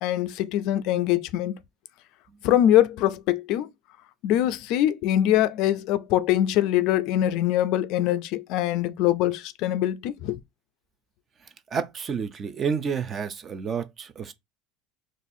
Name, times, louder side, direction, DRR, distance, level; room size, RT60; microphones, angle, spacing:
voice 1, 0.0-1.5 2.4-3.7 4.2-10.4, left 12 dB, 55° left, 0.3 m, -23 dB
voice 2, 11.4-14.3, right 6 dB, 25° right, 0.4 m, -30 dB
4.0 x 2.4 x 2.6 m
cardioid pair, 155°, 0 cm